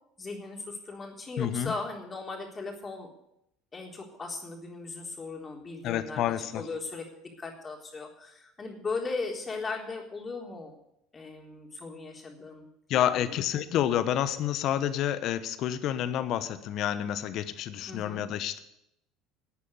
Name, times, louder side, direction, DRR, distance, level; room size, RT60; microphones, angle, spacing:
voice 1, 0.2-3.1 3.7-10.7 11.1-12.6 12.9-13.4 17.9-18.2, left 3 dB, 25° left, 1 dB, 3.7 m, -38 dB
voice 2, 1.4-1.7 5.8-6.6 12.9-18.6, left 11 dB, 55° left, 13 dB, 1.1 m, -29 dB
12.0 x 8.4 x 9.8 m, 0.81 s
hypercardioid pair, 70°, 0 cm